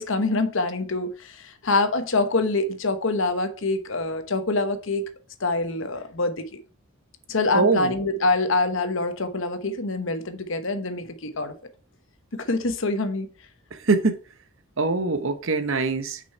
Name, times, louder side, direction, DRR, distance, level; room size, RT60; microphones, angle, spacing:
voice 1, 0.0-5.1 5.4-6.6 7.3-11.5 12.3-13.3, left 3 dB, 60° left, 1.0 m, -25 dB
voice 2, 7.5-7.9 13.7-14.2 14.8-16.2, right 3 dB, 60° right, 0.9 m, -23 dB
6.4 x 5.4 x 4.5 m
head